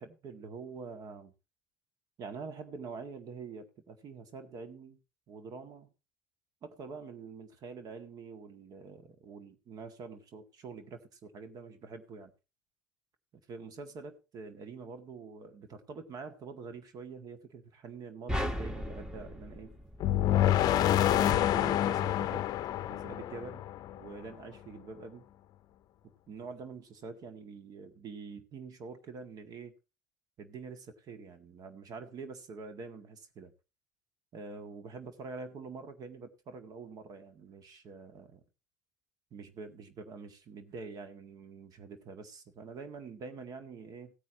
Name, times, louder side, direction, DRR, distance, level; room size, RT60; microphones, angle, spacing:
voice 1, 0.0-1.3 2.2-5.0 5.3-5.9 6.6-12.3 13.5-19.7 20.5-22.5 22.9-25.2 26.0-29.7 30.4-33.5 34.3-38.4 39.3-44.1, right 4 dB, 45° right, 1.9 m, -46 dB
sound 1, 18.3-20.7, equal, 10° right, 1.8 m, -36 dB
sound 2, 20.0-24.1, left 12 dB, 45° left, 0.7 m, -27 dB
16.5 x 9.3 x 2.9 m
figure-of-eight pair, 60°, 9 cm